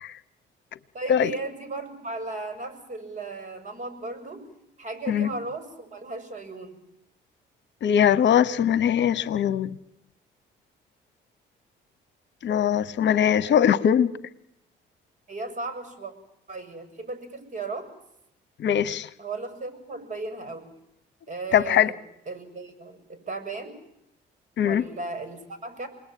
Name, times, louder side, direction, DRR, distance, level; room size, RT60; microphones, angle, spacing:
voice 1, 0.9-4.5 4.8-6.8 15.3-16.1 16.5-17.9 19.2-20.7 21.3-22.0 22.3-23.8 24.6-25.9, right 3 dB, 40° right, 9 dB, 7.0 m, -36 dB
voice 2, 7.8-9.7 12.4-14.2 18.6-19.1 21.5-21.9 24.6-24.8, left 9 dB, 65° left, 18 dB, 1.1 m, -21 dB
29.0 x 21.0 x 9.3 m, 0.81 s
cardioid pair, 90°, 20 cm